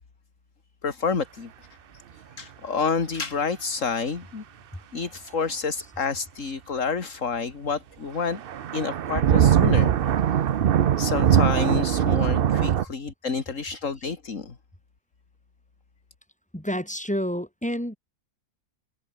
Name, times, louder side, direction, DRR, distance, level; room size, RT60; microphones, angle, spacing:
voice 1, 0.8-1.5 2.4-4.4 4.9-8.4 8.7-9.9 11.0-14.5, left 5 dB, 55° left, 2.5 m, -29 dB
sound 1, 8.3-12.8, right 9 dB, 55° right, 0.6 m, -21 dB
voice 2, 16.5-18.0, equal, 5° left, 3.2 m, -29 dB
omnidirectional pair, 1.6 m